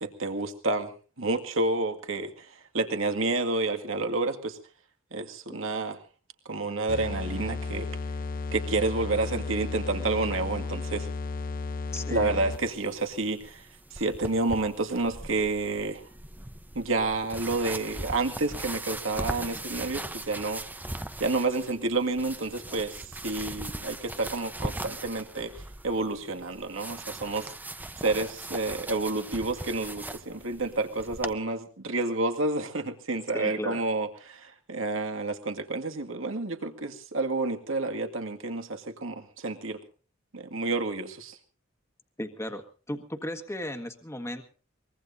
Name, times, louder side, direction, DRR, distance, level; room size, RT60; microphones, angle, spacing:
voice 1, 0.0-4.6 5.1-6.0 6.5-7.9 8.5-11.1 12.1-13.7 13.9-16.0 16.7-20.6 21.2-27.5 28.0-39.8 40.3-41.4, right 3 dB, 70° right, 5 dB, 2.1 m, -29 dB
sound 1, 6.9-12.8, left 3 dB, 45° left, 0.8 m, -34 dB
voice 2, 11.9-12.3 33.3-33.8 42.2-44.4, left 1 dB, 15° left, 6 dB, 1.6 m, -35 dB
sound 2, 12.5-31.3, right 1 dB, 10° right, 0.8 m, -40 dB
23.5 x 21.5 x 2.7 m, 0.38 s
head